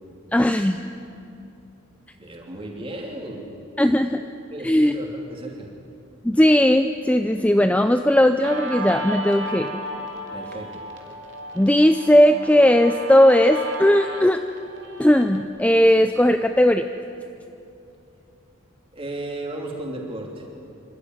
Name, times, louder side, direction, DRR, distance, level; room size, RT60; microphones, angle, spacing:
voice 1, 0.3-0.8 3.8-4.2 4.6-4.9 6.2-9.7 11.6-14.4 15.0-16.9, left 1 dB, 5° left, 7 dB, 0.4 m, -17 dB
voice 2, 2.2-3.5 4.5-5.7 10.3-10.8 18.9-20.5, right 1 dB, 25° right, 0 dB, 3.0 m, -34 dB
Guitar, 8.4-15.4, right 1 dB, 60° right, 2.4 m, -34 dB
26.0 x 13.0 x 9.6 m, 2.6 s
head